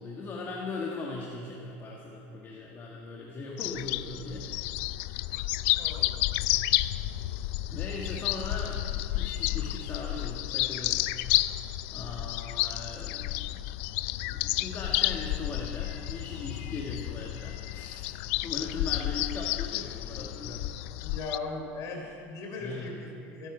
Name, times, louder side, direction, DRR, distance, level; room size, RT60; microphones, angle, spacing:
voice 1, 0.0-4.5 7.7-11.1 11.9-13.7 14.3-18.1 18.4-20.7 22.6-22.9, left 3 dB, 35° left, -2 dB, 1.6 m, -39 dB
sound 1, 3.6-21.4, left 16 dB, 70° left, 0.4 m, -31 dB
voice 2, 5.8-6.1 21.0-23.5, left 3 dB, 50° left, 1 dB, 3.6 m, -38 dB
21.5 x 10.0 x 5.0 m, 2.6 s
supercardioid pair, 120°, 7 cm